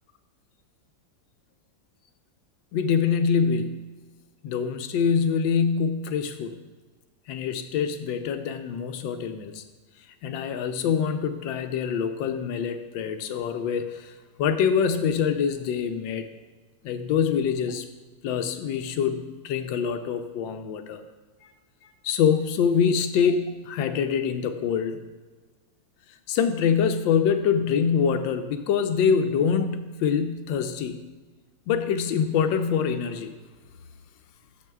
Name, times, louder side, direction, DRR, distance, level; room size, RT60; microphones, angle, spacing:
voice 1, 2.7-3.9 4.4-6.6 7.3-9.6 10.2-16.3 16.8-17.8 18.2-21.0 22.0-25.0 26.3-31.0 31.7-33.3, left 7 dB, 90° left, 8 dB, 1.4 m, -25 dB
12.0 x 7.3 x 2.3 m, 1.3 s
omnidirectional pair, 2.0 m